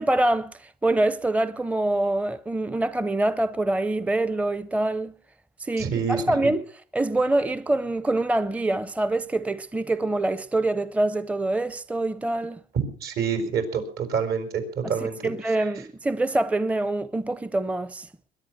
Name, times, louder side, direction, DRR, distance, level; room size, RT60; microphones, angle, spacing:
voice 1, 0.0-5.1 5.6-6.7 6.9-12.6 14.8-18.1, right 2 dB, 10° right, 0.7 m, -25 dB
voice 2, 5.8-6.2 12.7-14.5 14.9-15.2 15.6-15.7, right 6 dB, 70° right, 5.2 m, -26 dB
22.0 x 10.5 x 6.1 m
cardioid pair, 110°, 17 cm